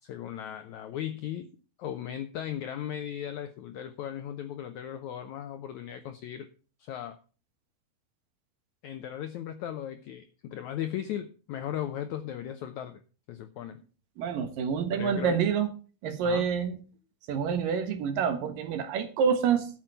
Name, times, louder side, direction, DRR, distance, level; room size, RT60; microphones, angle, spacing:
voice 1, 0.0-1.5 1.8-6.5 6.8-7.2 8.8-13.0 13.3-13.8 14.9-15.4 16.2-16.5, left 10 dB, 85° left, 9 dB, 1.7 m, -37 dB
voice 2, 14.2-15.7 16.0-16.8 17.3-19.7, right 6 dB, 70° right, 8 dB, 2.9 m, -27 dB
12.5 x 7.5 x 5.7 m, 0.36 s
omnidirectional pair, 4.4 m